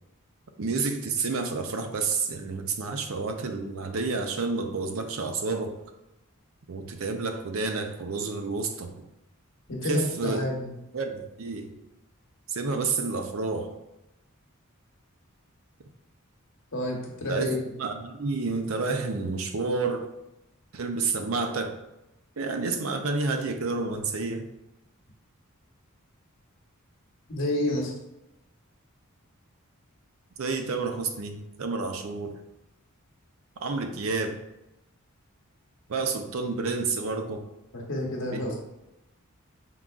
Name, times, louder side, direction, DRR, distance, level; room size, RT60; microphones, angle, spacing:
voice 1, 0.6-5.8 6.7-8.9 9.8-10.5 10.9-11.8 12.5-13.8 17.3-17.5 17.8-20.1 20.7-21.8 22.4-24.5 30.4-32.3 33.6-34.4 35.9-37.5 38.2-38.5, right 4 dB, 70° right, 5 dB, 0.5 m, -30 dB
voice 2, 9.7-10.7 16.7-17.6 27.3-27.9 37.7-38.5, left 1 dB, 60° left, -1 dB, 1.1 m, -29 dB
5.6 x 3.8 x 2.4 m, 0.92 s
head